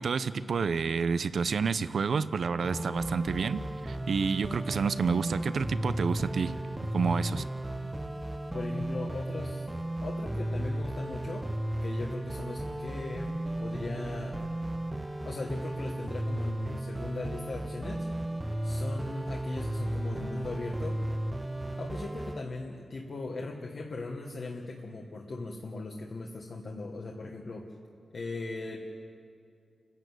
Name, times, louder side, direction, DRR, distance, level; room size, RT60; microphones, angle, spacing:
voice 1, 0.0-6.5 6.9-7.4, right 5 dB, 65° right, 14 dB, 0.6 m, -29 dB
sound 1, 2.6-22.4, right 1 dB, 10° right, 0.6 m, -34 dB
voice 2, 8.5-9.7 10.0-11.5 11.8-14.4 15.2-18.1 18.6-21.0 21.7-27.7 28.1-28.8, left 3 dB, 55° left, 0 dB, 1.4 m, -39 dB
29.5 x 11.0 x 8.0 m, 2.5 s
wide cardioid pair, 135°, 0 cm